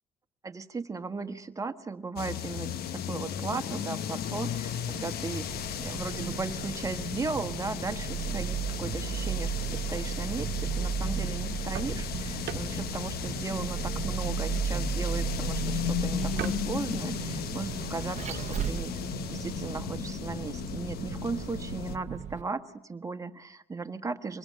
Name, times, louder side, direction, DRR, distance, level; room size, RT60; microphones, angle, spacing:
voice 1, 0.4-19.0 19.3-24.4, right 4 dB, 20° right, 8 dB, 1.4 m, -37 dB
sound 1, 2.2-22.0, left 10 dB, 70° left, 1.1 m, -35 dB
Vehicle, 5.5-22.4, right 8 dB, 45° right, 0.9 m, -35 dB
sound 2, 11.5-17.1, right 12 dB, 75° right, 1.2 m, -44 dB
25.5 x 21.5 x 7.6 m, 0.84 s
cardioid pair, 110°, 17 cm